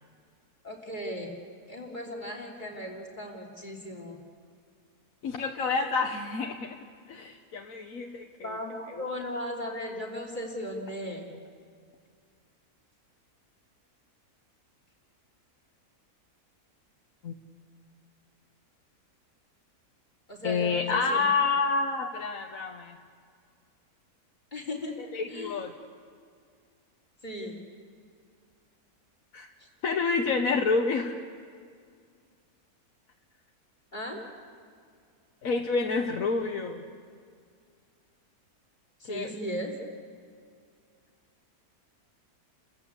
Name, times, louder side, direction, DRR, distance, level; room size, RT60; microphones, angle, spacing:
voice 1, 0.6-1.4 1.7-4.2 8.4-11.3 20.3-21.3 24.5-25.0 25.3-25.6 27.2-27.6 33.9-34.2 39.0-39.8, left 1 dB, 30° left, 1 dB, 3.5 m, -37 dB
voice 2, 5.2-6.8 7.1-8.6 8.9-9.1 17.2-17.3 20.4-23.0 25.1-25.7 29.3-29.5 29.8-31.2 35.4-36.8 39.1-39.3, left 4 dB, 65° left, 2 dB, 1.5 m, -28 dB
30.0 x 15.0 x 8.4 m, 2.2 s
omnidirectional pair, 1.6 m